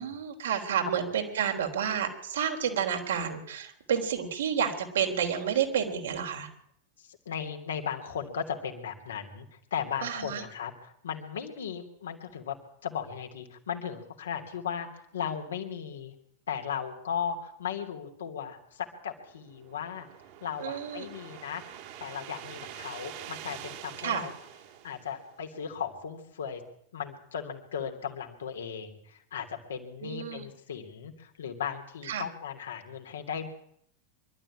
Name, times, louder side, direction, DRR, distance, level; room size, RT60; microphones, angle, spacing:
voice 1, 0.0-6.5 10.0-10.4 20.6-21.1 24.0-24.3 30.0-30.5 32.1-32.2, right 8 dB, 65° right, 4 dB, 3.6 m, -30 dB
voice 2, 7.0-12.6 12.8-16.1 16.5-20.1 20.4-21.6 22.0-24.3 24.8-26.6 26.9-33.5, left 7 dB, 65° left, 4 dB, 3.1 m, -36 dB
sound 1, 19.1-25.6, right 11 dB, 50° right, 3.0 m, -46 dB
25.0 x 12.5 x 8.8 m, 0.71 s
figure-of-eight pair, 90°, 0 cm